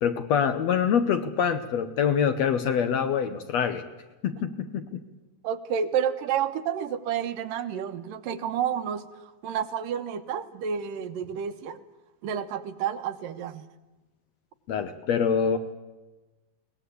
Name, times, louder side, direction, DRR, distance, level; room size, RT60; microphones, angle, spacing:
voice 1, 0.0-3.8 4.2-5.0 14.7-15.6, left 7 dB, 65° left, 9 dB, 1.9 m, -25 dB
voice 2, 5.4-11.8 12.2-13.6, right 8 dB, 75° right, 10 dB, 2.7 m, -30 dB
22.5 x 19.0 x 8.4 m, 1.1 s
omnidirectional pair, 4.0 m